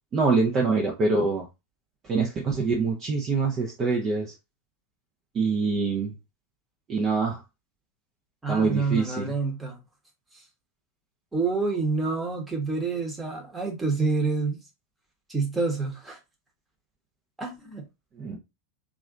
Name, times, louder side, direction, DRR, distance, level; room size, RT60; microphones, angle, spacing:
voice 1, 0.1-1.4 2.1-4.3 5.3-6.1 6.9-7.4 8.5-9.3 18.2-18.4, right 4 dB, 30° right, 0.7 m, -25 dB
voice 2, 8.4-9.8 10.3-10.4 11.3-14.6 15.3-16.2 17.4-17.8, right 4 dB, 10° right, 1.2 m, -28 dB
3.1 x 2.5 x 3.7 m
figure-of-eight pair, 90°, 0 cm